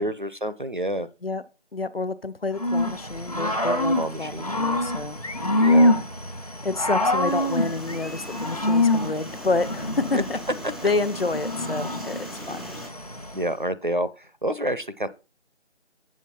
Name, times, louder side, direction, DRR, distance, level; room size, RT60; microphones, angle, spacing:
voice 1, 0.0-1.1 3.9-4.5 5.6-5.9 10.1-10.2 13.3-15.1, equal, 45° right, 0.6 m, -28 dB
voice 2, 1.7-5.2 5.7-6.0 6.6-10.4 10.8-12.7, left 3 dB, 55° left, 0.8 m, -29 dB
Growling / Cricket, 2.6-13.5, left 1 dB, 35° left, 1.0 m, -25 dB
sound 1, 5.2-6.0 7.5-9.0, left 3 dB, 90° left, 1.4 m, -40 dB
helicopter start- edit, 7.3-12.9, right 1 dB, ahead, 0.5 m, -41 dB
7.6 x 7.2 x 4.3 m
figure-of-eight pair, 175°, 35 cm